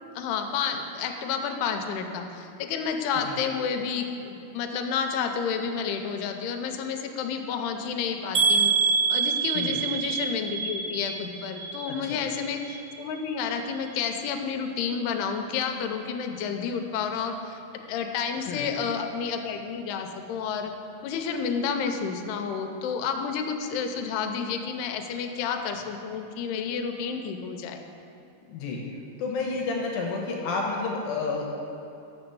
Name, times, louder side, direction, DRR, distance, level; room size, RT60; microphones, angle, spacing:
voice 1, 0.1-20.7 21.0-27.8, left 6 dB, 90° left, 5 dB, 2.7 m, -30 dB
sound 1, 8.3-12.3 12.6-13.2 13.7-13.8 14.2-14.3, right 5 dB, 85° right, 1.5 m, -26 dB
voice 2, 11.9-12.2 18.5-18.7 28.5-28.8 29.2-31.6, left 3 dB, 70° left, -1 dB, 2.5 m, -30 dB
6.9 x 6.7 x 6.7 m, 2.8 s
omnidirectional pair, 4.6 m